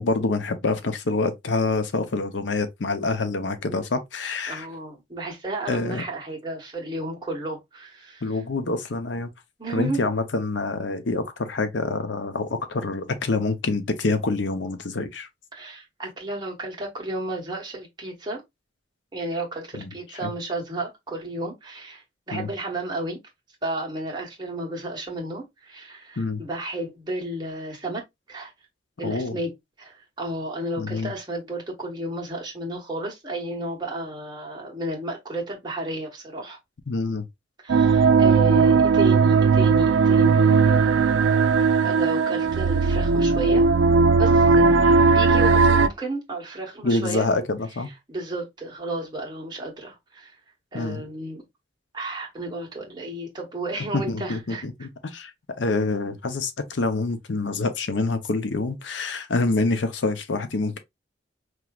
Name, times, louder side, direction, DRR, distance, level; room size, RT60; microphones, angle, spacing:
voice 1, 0.0-4.7 5.7-6.0 8.2-9.3 9.7-15.3 19.7-19.9 20.2-20.3 22.3-22.5 26.2-26.4 29.0-29.4 30.8-31.1 36.9-37.3 44.6-44.7 46.8-47.9 50.7-51.0 53.9-55.3 55.6-60.8, left 3 dB, 80° left, 0.7 m, -26 dB
voice 2, 4.5-8.2 9.6-10.0 15.5-18.4 19.1-23.2 23.6-28.0 28.3-28.5 29.0-29.5 29.8-36.6 37.6-41.4 41.8-43.7 44.2-47.3 48.1-50.3 50.7-51.4 51.9-54.6, right 1 dB, 25° right, 1.4 m, -32 dB
sound 1, 37.7-45.9, right 4 dB, 85° right, 0.4 m, -18 dB
4.6 x 3.0 x 2.3 m
head